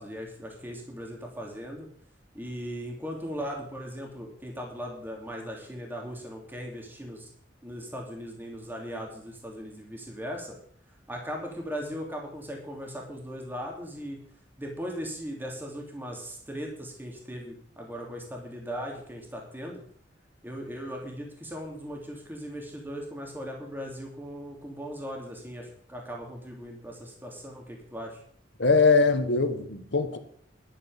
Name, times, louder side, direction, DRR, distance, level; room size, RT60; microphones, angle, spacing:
voice 1, 0.0-1.9 2.3-7.3 7.6-10.5 11.1-14.2 14.6-19.8 20.4-28.2, equal, 10° right, 3.0 m, -38 dB
voice 2, 28.6-30.2, left 4 dB, 80° left, 1.6 m, -22 dB
11.5 x 8.2 x 7.3 m
head